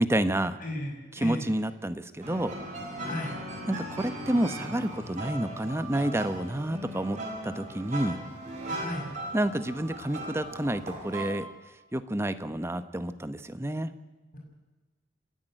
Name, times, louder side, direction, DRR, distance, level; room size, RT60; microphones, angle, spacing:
voice 1, 0.0-0.6 1.2-2.6 3.7-7.2 7.4-8.2 9.3-11.5 11.9-13.9, right 1 dB, 15° right, 11 dB, 0.9 m, -29 dB
voice 2, 0.6-1.5 3.0-3.4 8.7-9.1, left 1 dB, 50° left, 0 dB, 6.2 m, -34 dB
sound 1, 2.2-11.3, right 1 dB, 45° right, 6.4 m, -38 dB
28.5 x 10.5 x 8.9 m, 1.3 s
head